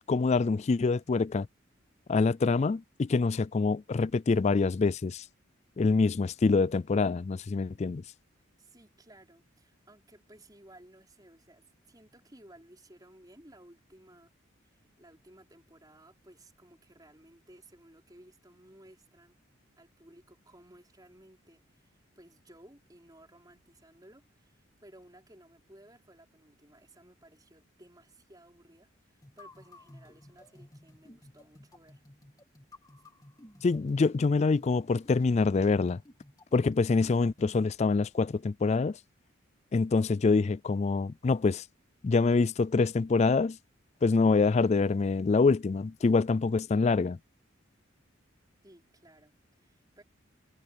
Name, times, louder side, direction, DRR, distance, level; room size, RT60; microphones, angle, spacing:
voice 1, 0.1-1.5 2.1-5.2 5.8-8.0 33.6-36.0 36.5-39.0 39.7-41.6 42.0-43.6 44.0-47.2, left 4 dB, 35° left, 0.3 m, -25 dB
voice 2, 8.6-14.3 14.6-19.4 19.8-32.0 48.6-50.0, right 1 dB, 20° right, 5.4 m, -57 dB
sound 1, 29.2-37.7, left 1 dB, 20° left, 2.5 m, -54 dB
head